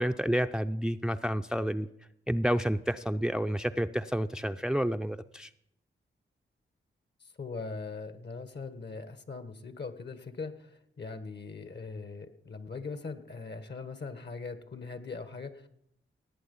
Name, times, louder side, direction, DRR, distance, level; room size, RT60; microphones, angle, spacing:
voice 1, 0.0-1.9 2.3-5.5, equal, 5° right, 9 dB, 0.5 m, -29 dB
voice 2, 7.2-15.7, left 4 dB, 55° left, 11 dB, 1.4 m, -41 dB
18.5 x 8.0 x 5.4 m, 0.75 s
cardioid pair, 45°, 21 cm